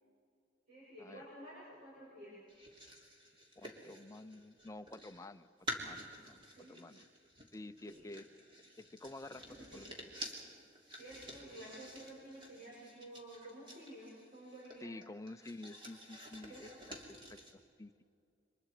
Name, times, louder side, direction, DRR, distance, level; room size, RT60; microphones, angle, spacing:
voice 1, 0.7-2.4 6.4-6.8 7.8-8.1 9.6-9.8 10.9-14.9 16.4-16.8, right 1 dB, 45° right, -7 dB, 7.1 m, -52 dB
sound 1, 2.5-5.3 5.6-17.5, equal, 25° right, 3.1 m, -50 dB
voice 2, 3.6-6.4 6.7-7.0 7.5-8.3 8.8-10.1 14.8-18.0, left 2 dB, 15° left, 10 dB, 0.5 m, -50 dB
29.5 x 25.5 x 5.0 m, 2.4 s
head